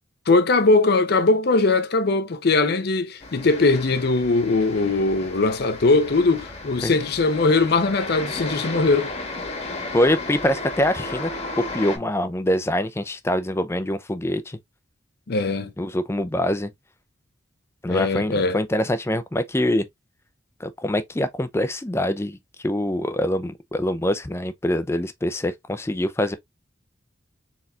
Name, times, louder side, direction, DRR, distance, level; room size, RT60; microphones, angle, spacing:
voice 1, 0.3-9.1 15.3-15.7 17.9-18.6, left 3 dB, 55° left, 0.6 m, -20 dB
sound 1, 3.2-12.0, left 2 dB, 35° left, 1.2 m, -34 dB
voice 2, 9.9-11.3 11.7-14.6 15.8-16.7 17.8-19.9 20.6-22.4 22.6-26.4, left 1 dB, 15° left, 0.5 m, -24 dB
4.2 x 4.0 x 2.4 m
head